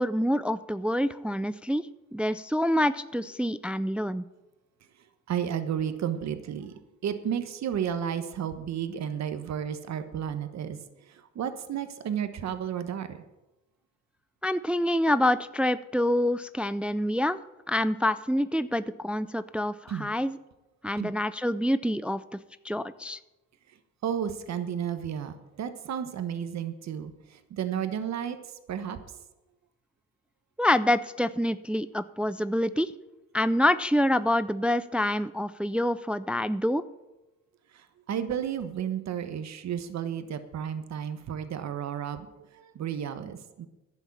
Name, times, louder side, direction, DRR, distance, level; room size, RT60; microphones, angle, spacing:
voice 1, 0.0-1.8 2.1-4.2 14.4-17.4 17.7-20.4 20.8-22.4 22.6-23.2 30.6-32.9 33.3-36.8, left 1 dB, 5° right, 14 dB, 0.4 m, -26 dB
voice 2, 5.3-10.8 11.1-13.2 19.9-20.1 21.0-21.1 24.0-28.4 28.7-29.1 37.7-43.7, right 8 dB, 60° right, 10 dB, 1.2 m, -32 dB
11.0 x 7.2 x 8.4 m, 1.0 s
cardioid pair, 90°, 30 cm